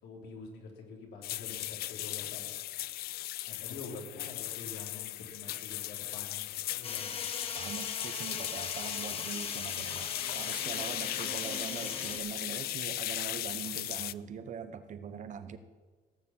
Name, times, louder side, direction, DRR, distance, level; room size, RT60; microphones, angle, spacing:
voice 1, 0.0-2.5 3.5-7.2, left 4 dB, 85° left, 1 dB, 3.2 m, -47 dB
sound 1, 1.2-14.1, left 16 dB, 65° left, 0.4 m, -37 dB
sound 2, 6.8-12.2, left 4 dB, 35° left, 1.7 m, -41 dB
voice 2, 7.5-15.6, right 7 dB, 45° right, 11 dB, 1.1 m, -42 dB
17.0 x 7.3 x 7.4 m, 1.4 s
cardioid pair, 110°, 17 cm